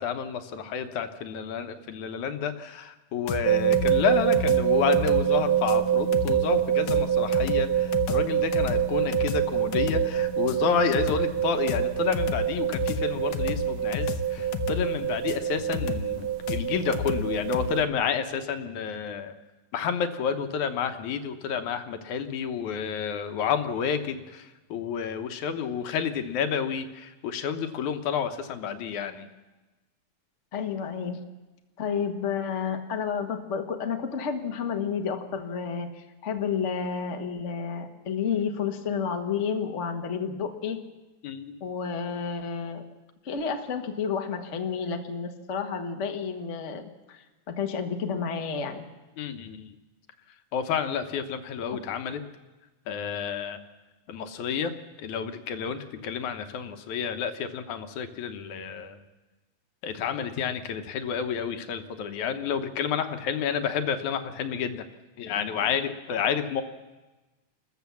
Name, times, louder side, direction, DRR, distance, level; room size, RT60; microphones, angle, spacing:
voice 1, 0.0-19.3 19.7-29.3 41.2-41.6 49.2-49.7 50.5-52.2 52.9-53.6 54.1-54.7 55.0-59.0 59.8-64.8 65.2-66.6, left 7 dB, 70° left, 8 dB, 2.3 m, -30 dB
sound 1, 3.3-17.7, left 6 dB, 90° left, 2.6 m, -33 dB
sound 2, 3.4-17.8, right 10 dB, 65° right, 1.8 m, -26 dB
voice 2, 30.5-31.2 31.8-40.8 41.6-42.8 43.2-48.8, left 6 dB, 45° left, 5 dB, 0.9 m, -31 dB
28.5 x 14.0 x 7.1 m, 1.2 s
omnidirectional pair, 3.8 m